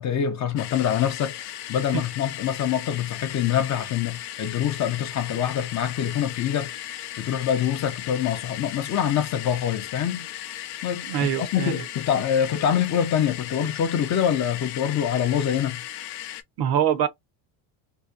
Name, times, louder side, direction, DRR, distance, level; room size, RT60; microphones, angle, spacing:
voice 1, 0.0-6.8 7.2-10.3 10.8-15.8, left 9 dB, 35° left, 0.5 m, -25 dB
sound 1, 0.6-16.4, left 13 dB, 80° left, 0.6 m, -37 dB
voice 2, 11.0-11.8 16.6-17.1, right 9 dB, 50° right, 0.6 m, -24 dB
2.7 x 2.0 x 2.3 m
supercardioid pair, 95°, 48 cm